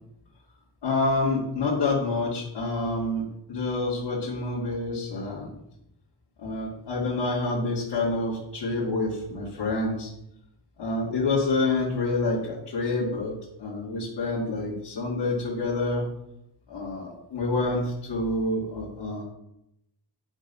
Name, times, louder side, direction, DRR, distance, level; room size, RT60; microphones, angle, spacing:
voice 1, 0.8-5.5 6.4-10.1 10.8-16.0 16.7-19.2, left 2 dB, 85° left, -7 dB, 2.6 m, -27 dB
9.8 x 5.5 x 5.6 m, 0.83 s
wide cardioid pair, 140°, 41 cm